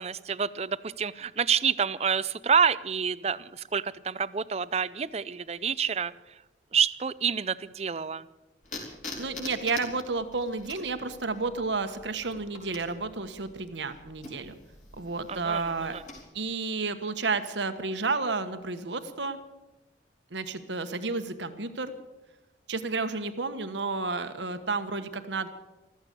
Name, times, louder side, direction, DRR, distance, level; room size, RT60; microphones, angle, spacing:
voice 1, 0.0-6.1 6.7-8.2 15.3-15.6 15.9-16.0, right 6 dB, 35° right, 17 dB, 0.5 m, -28 dB
sound 1, 8.6-16.2, left 2 dB, 45° left, 4.1 m, -45 dB
voice 2, 9.2-14.5 15.0-16.0 16.3-19.4 20.3-21.9 22.7-25.5, right 4 dB, 80° right, 9 dB, 1.3 m, -31 dB
15.0 x 14.0 x 6.8 m, 1.0 s
head